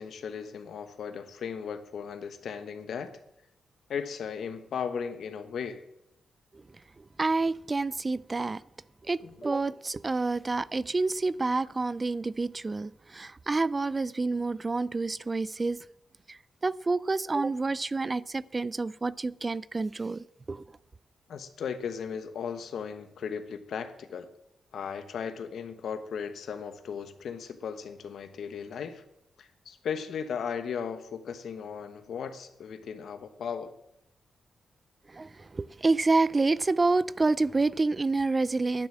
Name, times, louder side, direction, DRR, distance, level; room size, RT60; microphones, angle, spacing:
voice 1, 0.0-3.2 3.9-5.8 9.2-9.4 21.3-24.3 24.7-29.0 29.4-33.7, left 7 dB, 75° left, 1.2 m, -36 dB
voice 2, 7.0-8.6 9.0-15.9 16.3-20.6 35.1-38.9, right 3 dB, 30° right, 0.4 m, -28 dB
10.5 x 9.4 x 7.4 m
cardioid pair, 80°, 0 cm